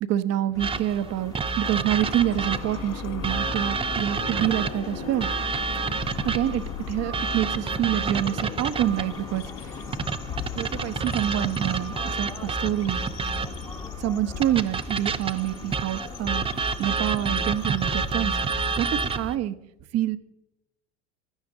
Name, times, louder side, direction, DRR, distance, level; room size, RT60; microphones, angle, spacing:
voice 1, 0.0-5.3 6.2-9.8 10.5-13.0 14.0-16.5 16.8-19.6 19.9-20.2, right 12 dB, 40° right, 14 dB, 1.0 m, -27 dB
sound 1, 0.5-19.4, left 1 dB, 10° left, 1.1 m, -41 dB
sound 2, 0.6-2.8 3.2-6.6 7.1-9.2 9.9-13.7 14.4-19.3, right 4 dB, 15° right, 0.6 m, -29 dB
sound 3, 2.0-19.2, left 9 dB, 45° left, 1.2 m, -39 dB
16.5 x 11.5 x 3.7 m, 0.87 s
hypercardioid pair, 90°, 37 cm